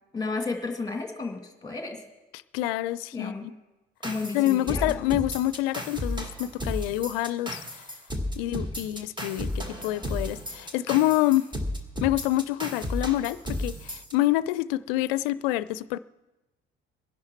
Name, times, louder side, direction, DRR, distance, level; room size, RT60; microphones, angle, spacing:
voice 1, 0.1-2.0 3.1-3.5 4.0-4.9, left 3 dB, 15° left, 2.3 m, -32 dB
voice 2, 2.5-3.5 4.3-7.9 8.4-11.5 12.0-16.0, left 15 dB, 70° left, 0.5 m, -27 dB
sound 1, 4.0-14.1, left 1 dB, 15° right, 1.9 m, -33 dB
20.5 x 11.0 x 4.5 m
figure-of-eight pair, 50°, 30 cm